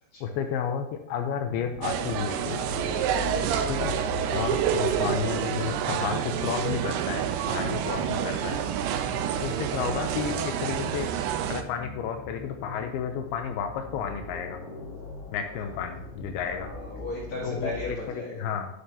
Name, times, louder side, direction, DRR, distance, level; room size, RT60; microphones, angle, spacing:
voice 1, 0.2-2.6 3.7-4.0 4.3-8.6 9.4-11.1 11.5-14.6 15.3-16.7 17.4-18.7, left 7 dB, 90° left, 5 dB, 2.2 m, -32 dB
sound 1, 1.5-17.9, left 4 dB, 65° left, 3.5 m, -41 dB
sound 2, 1.8-11.6, right 9 dB, 80° right, 2.4 m, -28 dB
voice 2, 16.4-18.5, left 2 dB, 50° left, -6 dB, 3.8 m, -37 dB
12.0 x 11.5 x 2.8 m, 0.81 s
omnidirectional pair, 5.3 m